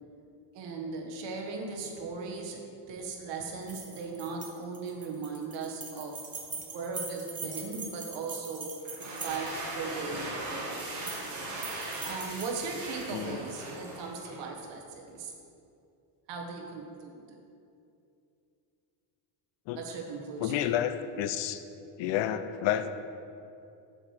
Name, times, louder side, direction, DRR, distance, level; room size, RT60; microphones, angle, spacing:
voice 1, 0.5-2.6 2.9-6.2 6.5-8.7 9.1-10.9 12.0-15.3 16.3-17.4 19.7-20.7, right 4 dB, 60° right, 1 dB, 1.4 m, -38 dB
sound 1, 3.6-9.7 10.8-11.3 11.6-13.1, right 4 dB, 15° right, 0.8 m, -42 dB
sound 2, 8.8-14.4, right 2 dB, 35° right, 1.9 m, -39 dB
voice 2, 20.4-21.6 22.0-22.9, left 11 dB, 65° left, 11 dB, 0.6 m, -30 dB
7.4 x 4.9 x 6.4 m, 2.6 s
cardioid pair, 145°, 48 cm